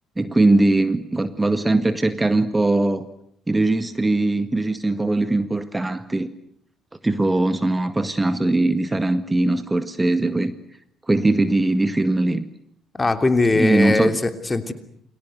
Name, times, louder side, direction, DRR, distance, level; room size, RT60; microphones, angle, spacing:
voice 1, 0.2-3.1 3.5-6.3 7.0-10.5 11.1-12.4 13.5-14.2, right 2 dB, 15° right, 11 dB, 1.8 m, -20 dB
voice 2, 13.0-14.7, left 2 dB, 20° left, 9 dB, 3.1 m, -20 dB
29.5 x 23.0 x 8.0 m, 0.68 s
figure-of-eight pair, 45°, 0 cm